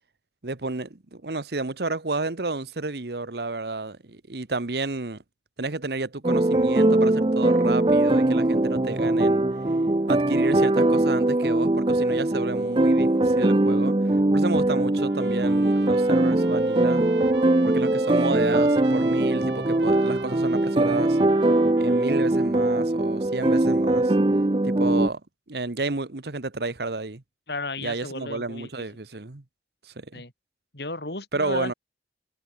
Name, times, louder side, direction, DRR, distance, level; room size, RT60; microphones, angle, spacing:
voice 1, 0.4-5.2 5.6-9.4 10.1-14.0 14.3-17.1 17.6-21.2 21.8-24.1 24.6-25.2 25.5-27.2 27.8-29.4 29.8-30.2 31.3-31.7, right 3 dB, 65° right, 1.2 m, -31 dB
sound 1, 6.2-25.1, right 2 dB, 30° right, 0.6 m, -21 dB
Trumpet, 15.0-22.5, right 5 dB, 90° right, 5.3 m, -43 dB
voice 2, 27.5-28.8 30.1-30.3 30.7-31.8, left 2 dB, 65° left, 4.9 m, -34 dB
head